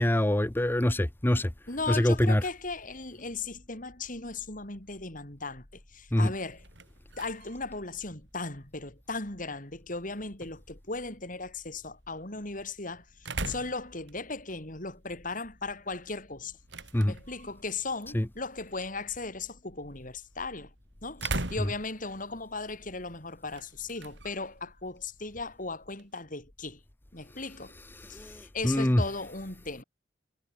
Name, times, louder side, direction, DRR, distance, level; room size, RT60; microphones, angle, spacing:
voice 1, 0.0-1.5 1.9-2.4 6.1-6.3 16.9-17.1 18.1-18.3 28.0-29.0, left 1 dB, 10° left, 0.7 m, -25 dB
voice 2, 1.7-6.6 7.2-16.5 17.0-20.7 21.0-26.8 27.1-27.8 28.1-29.8, left 3 dB, 45° left, 5.4 m, -37 dB
sound 1, 6.4-26.2, right 2 dB, 70° right, 5.5 m, -44 dB
head